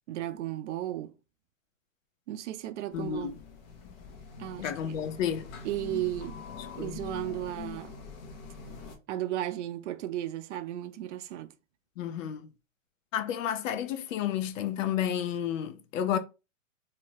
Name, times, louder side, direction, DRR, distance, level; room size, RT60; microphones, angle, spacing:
voice 1, 0.1-1.1 2.3-3.3 4.4-5.0 5.6-6.4 6.7-7.9 9.1-11.5, right 13 dB, 60° right, 0.5 m, -35 dB
voice 2, 2.9-3.3 4.6-5.5 6.8-7.0 12.0-12.5 13.1-16.2, left 9 dB, 70° left, 0.6 m, -31 dB
sound 1, 2.9-9.0, left 5 dB, 25° left, 0.4 m, -44 dB
2.7 x 2.1 x 3.2 m
hypercardioid pair, 130°, 40 cm